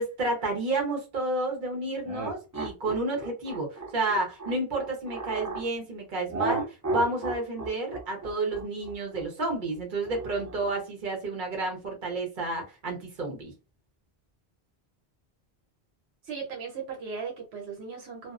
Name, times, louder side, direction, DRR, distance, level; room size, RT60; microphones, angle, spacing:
voice 1, 0.0-6.6 6.9-13.5, right 2 dB, 50° right, 1.0 m, -30 dB
sound 1, 2.0-5.7 6.3-10.8, right 3 dB, 30° right, 0.3 m, -34 dB
voice 2, 16.2-18.3, right 5 dB, 80° right, 0.9 m, -37 dB
2.6 x 2.0 x 2.4 m
omnidirectional pair, 1.1 m